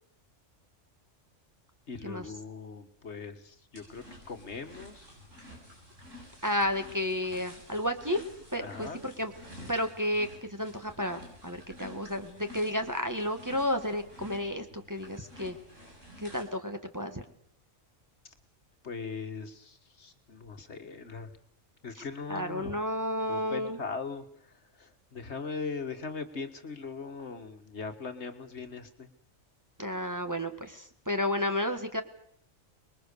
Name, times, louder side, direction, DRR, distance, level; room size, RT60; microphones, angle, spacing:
voice 1, 1.9-5.1 8.5-9.0 18.8-21.3 21.8-22.8 23.2-29.1, left 4 dB, 65° left, 8 dB, 1.9 m, -40 dB
sound 1, 3.7-16.4, equal, 90° right, 7.9 m, -50 dB
voice 2, 6.4-8.2 8.5-9.3 9.7-15.6 16.2-17.2 21.9-22.0 22.3-23.8 29.8-32.0, left 1 dB, 15° right, 5 dB, 1.7 m, -32 dB
25.0 x 21.5 x 6.8 m, 0.64 s
omnidirectional pair, 1.3 m